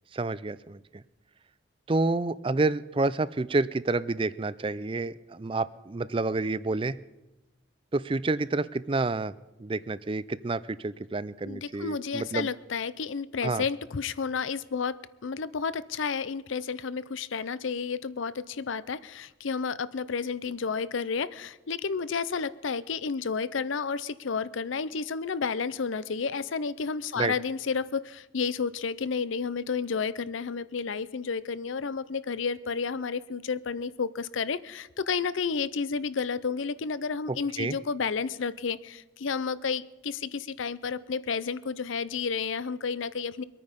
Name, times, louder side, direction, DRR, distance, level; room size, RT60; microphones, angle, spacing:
voice 1, 0.1-1.0 1.9-7.0 7.9-9.3 9.6-12.5 13.4-13.6 27.2-27.3 37.3-37.8, right 3 dB, 25° right, 17 dB, 0.4 m, -29 dB
voice 2, 11.4-43.4, left 5 dB, 75° left, 17 dB, 0.6 m, -31 dB
23.5 x 9.4 x 5.2 m, 1.0 s
head